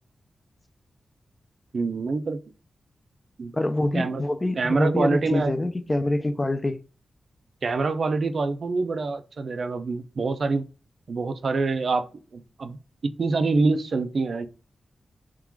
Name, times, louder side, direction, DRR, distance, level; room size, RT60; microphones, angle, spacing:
voice 1, 1.7-2.4 3.4-3.5 3.9-4.2 4.6-5.6 7.6-10.6 11.1-12.8 13.0-14.5, right 3 dB, 55° right, 0.5 m, -25 dB
voice 2, 3.5-6.8, left 1 dB, 20° left, 0.4 m, -26 dB
3.7 x 2.4 x 4.5 m
wide cardioid pair, 130°, 0 cm